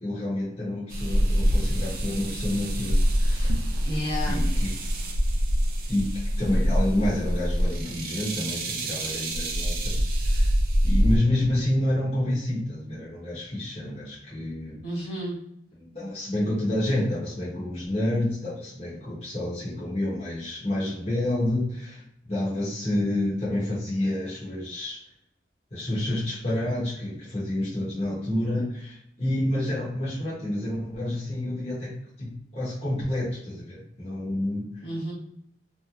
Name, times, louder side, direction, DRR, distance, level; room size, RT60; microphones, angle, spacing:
voice 1, 0.0-3.5 4.3-4.7 5.9-6.1 6.4-10.5 10.8-14.8 15.8-22.0 22.3-25.0 25.7-34.7, left 1 dB, 35° left, -8 dB, 0.9 m, -29 dB
sound 1, 0.9-11.2, equal, 55° right, 0.4 m, -25 dB
voice 2, 3.8-4.4 14.8-15.4 34.8-35.1, equal, 65° left, -6 dB, 1.1 m, -31 dB
2.8 x 2.1 x 2.4 m, 0.73 s
head